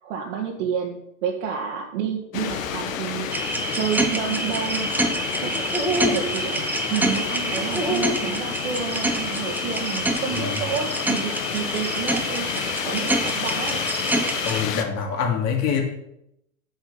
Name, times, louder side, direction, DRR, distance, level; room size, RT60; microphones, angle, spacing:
voice 1, 0.0-3.3 3.7-5.5 5.9-13.8, right 7 dB, 60° right, -1 dB, 1.7 m, -30 dB
sound 1, 2.3-14.8, left 8 dB, 65° left, 1.4 m, -30 dB
sound 2, 3.3-14.6, right 1 dB, 5° right, 1.0 m, -26 dB
voice 2, 14.4-15.8, left 7 dB, 40° left, 2 dB, 2.8 m, -25 dB
7.9 x 7.1 x 7.0 m, 0.79 s
hypercardioid pair, 105°, 42 cm